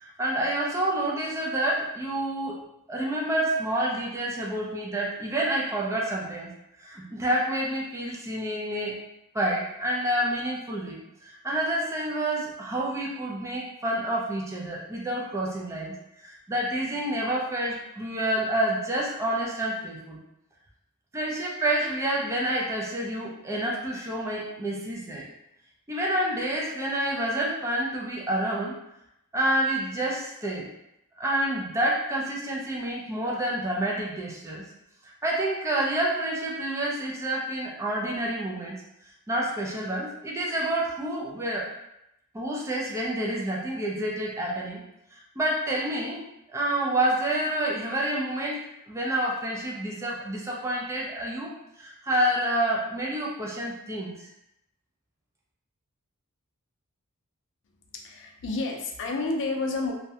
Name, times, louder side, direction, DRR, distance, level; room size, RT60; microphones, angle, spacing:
voice 1, 0.0-2.6 2.9-6.5 6.8-9.0 9.3-15.9 16.2-20.2 21.1-25.2 25.9-28.8 29.3-30.7 31.2-34.6 35.0-38.8 39.3-41.7 42.3-44.8 45.4-51.5 51.8-54.2, right 1 dB, 15° right, -4 dB, 0.4 m, -28 dB
voice 2, 57.9-59.9, left 3 dB, 55° left, 1 dB, 0.4 m, -30 dB
2.3 x 2.1 x 2.7 m, 0.83 s
head